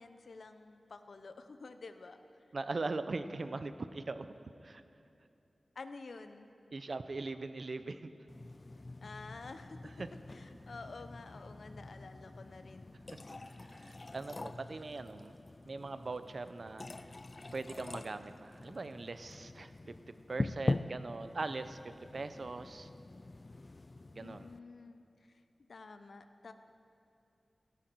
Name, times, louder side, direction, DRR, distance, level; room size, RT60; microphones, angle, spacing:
voice 1, 0.0-2.2 2.4-2.5 5.7-6.5 9.0-9.9 10.3-12.9 24.2-25.4 25.7-26.5, left 3 dB, 75° left, 9 dB, 0.7 m, -50 dB
voice 2, 2.5-4.3 4.6-4.8 6.7-8.1 10.0-10.1 13.5-15.3 15.7-17.1 17.5-21.8 22.1-22.9 24.1-24.5, right 3 dB, 60° right, 11 dB, 0.7 m, -41 dB
sound 1, 8.3-24.6, left 2 dB, 40° left, 0.4 m, -43 dB
17.0 x 12.5 x 4.7 m, 2.7 s
wide cardioid pair, 60°, 0 cm